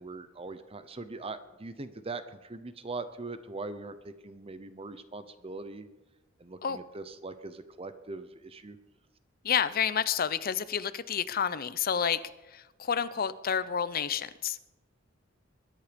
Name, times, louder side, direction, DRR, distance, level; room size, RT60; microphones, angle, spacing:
voice 1, 0.0-5.9 6.4-8.8, right 3 dB, 30° right, 11 dB, 0.8 m, -41 dB
voice 2, 9.4-12.2 12.5-14.7, left 7 dB, 50° left, 15 dB, 0.6 m, -29 dB
21.5 x 10.0 x 5.2 m, 1.0 s
head